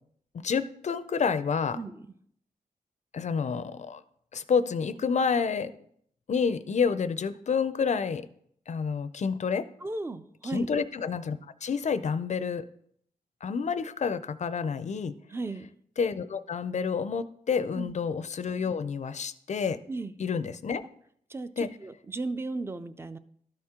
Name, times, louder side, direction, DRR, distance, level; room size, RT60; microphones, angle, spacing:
voice 1, 0.3-1.8 3.1-4.0 4.3-5.7 6.3-8.3 8.7-9.7 10.5-12.7 13.4-15.1 16.0-19.8 20.2-20.8 21.6-21.7, left 6 dB, 50° left, 13 dB, 0.4 m, -29 dB
voice 2, 1.8-2.1 9.8-10.7 15.3-15.7 17.7-17.9 19.9-20.1 21.3-23.2, right 3 dB, 15° right, 12 dB, 0.4 m, -35 dB
13.0 x 4.4 x 3.6 m, 0.67 s
wide cardioid pair, 150°, 15 cm